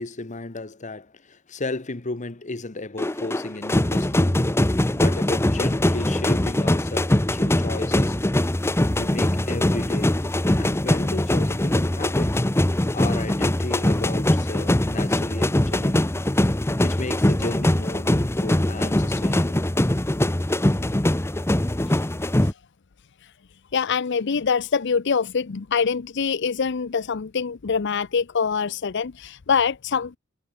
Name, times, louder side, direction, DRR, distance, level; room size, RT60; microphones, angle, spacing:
voice 1, 0.0-4.7 4.9-8.3 8.9-10.2 10.6-12.4 12.9-16.1 16.8-19.6 20.7-20.9, left 2 dB, 35° left, 1.1 m, -34 dB
sound 1, 3.0-22.5, left 1 dB, 15° left, 0.8 m, -22 dB
voice 2, 23.7-30.2, left 6 dB, 60° left, 0.6 m, -24 dB
head